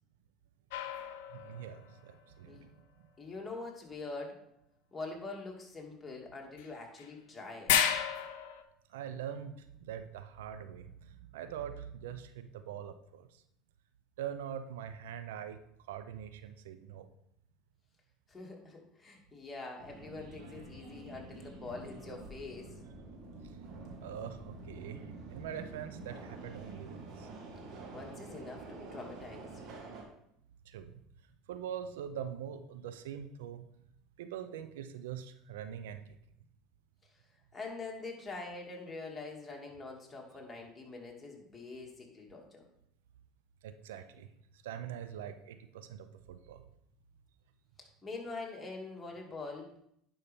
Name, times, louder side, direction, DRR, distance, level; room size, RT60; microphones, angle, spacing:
sound 1, 0.7-2.0 6.6-6.7 7.0-7.1 7.7-8.6, left 10 dB, 75° left, 0.7 m, -31 dB
voice 1, 1.3-2.7 8.9-13.3 14.2-15.6 15.9-17.1 24.0-27.3 30.7-31.0 31.5-33.7 34.2-36.0 43.6-44.3 44.6-46.7, right 9 dB, 80° right, 10 dB, 0.5 m, -43 dB
voice 2, 3.2-4.4 4.9-7.7 18.3-22.7 27.9-29.5 37.5-42.6 47.8-49.7, left 3 dB, 20° left, -1 dB, 2.5 m, -44 dB
Subway metro underground, 19.8-30.0, right 3 dB, 60° right, 1.9 m, -48 dB
10.0 x 5.5 x 3.6 m, 0.74 s
hypercardioid pair, 80°, 0 cm